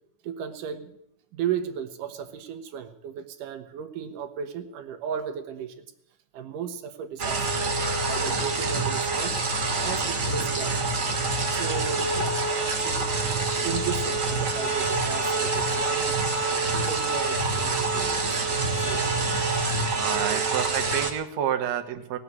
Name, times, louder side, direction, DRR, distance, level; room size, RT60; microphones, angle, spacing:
voice 1, 0.2-1.0 1.3-5.9 6.3-7.6 8.1-9.4 9.8-10.8 11.5-13.1 13.6-16.2 16.7-19.2 20.2-20.5, right 8 dB, 85° right, 6 dB, 2.7 m, -35 dB
sound 1, 7.2-21.1, right 3 dB, 35° right, 1.5 m, -26 dB
voice 2, 19.9-22.2, right 10 dB, 65° right, 6 dB, 2.2 m, -29 dB
18.5 x 7.9 x 9.7 m, 0.77 s
omnidirectional pair, 3.7 m